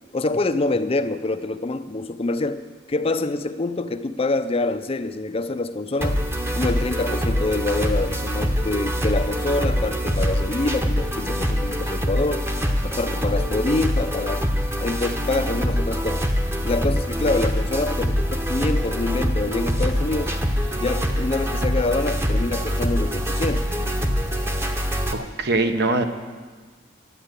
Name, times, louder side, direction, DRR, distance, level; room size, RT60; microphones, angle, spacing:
voice 1, 0.1-2.6 2.9-6.2 6.6-12.4 12.8-14.4 14.8-16.2 16.6-20.3 20.7-23.7, left 2 dB, 30° left, 10 dB, 0.5 m, -26 dB
sound 1, 6.0-25.1, equal, 15° right, 0.9 m, -24 dB
voice 2, 25.1-26.0, right 2 dB, 60° right, 7 dB, 1.0 m, -22 dB
11.5 x 9.1 x 8.1 m, 1.4 s
head